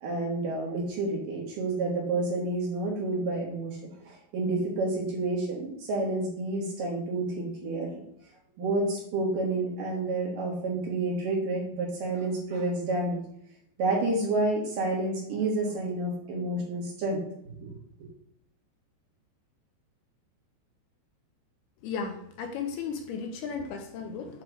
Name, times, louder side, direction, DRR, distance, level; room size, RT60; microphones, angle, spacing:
voice 1, 0.0-3.8 4.0-7.9 8.6-13.2 13.8-17.2 17.6-17.7, right 2 dB, 60° right, -3 dB, 2.7 m, -29 dB
voice 2, 21.8-24.4, left 5 dB, 80° left, 4 dB, 2.5 m, -35 dB
8.0 x 3.2 x 4.7 m, 0.72 s
omnidirectional pair, 4.8 m